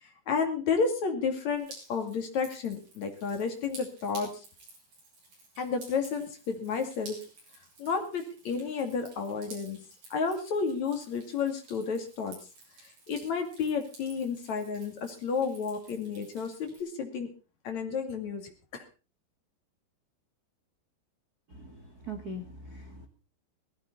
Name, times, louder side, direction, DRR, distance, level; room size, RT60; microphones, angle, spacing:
voice 1, 0.0-4.3 5.6-7.2 7.8-9.8 10.1-12.4 13.1-17.3 17.6-18.8, left 5 dB, 45° left, 5 dB, 3.1 m, -31 dB
Drip, 1.6-16.8, right 2 dB, 45° right, 9.2 m, -53 dB
voice 2, 21.5-23.1, right 1 dB, 70° right, 3 dB, 0.8 m, -41 dB
18.0 x 14.5 x 4.0 m, 0.34 s
omnidirectional pair, 5.3 m